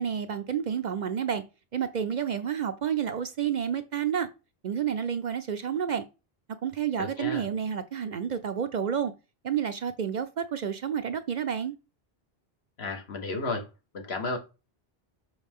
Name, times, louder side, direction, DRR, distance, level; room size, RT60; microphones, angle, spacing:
voice 1, 0.0-1.4 1.7-4.3 4.6-6.1 6.6-9.1 9.4-11.7, right 8 dB, 55° right, 0.6 m, -30 dB
voice 2, 7.0-7.4 12.8-13.7 13.9-14.4, left 3 dB, 80° left, 1.7 m, -32 dB
6.2 x 5.5 x 3.6 m
omnidirectional pair, 1.0 m